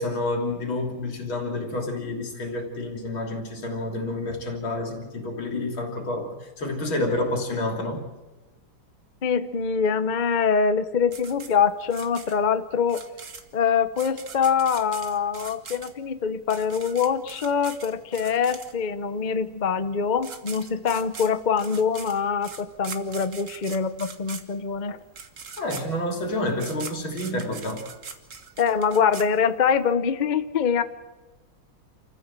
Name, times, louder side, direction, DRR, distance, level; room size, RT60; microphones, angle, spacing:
voice 1, 0.0-8.0 25.6-27.8, left 1 dB, 80° left, 3 dB, 4.1 m, -29 dB
voice 2, 9.2-13.0 13.5-25.0 28.6-30.8, left 6 dB, 45° left, 11 dB, 0.5 m, -24 dB
sound 1, 11.1-19.0 19.9-20.0 20.2-29.9, right 5 dB, 40° right, 1.7 m, -41 dB
28.5 x 15.0 x 7.5 m, 1.2 s
omnidirectional pair, 2.2 m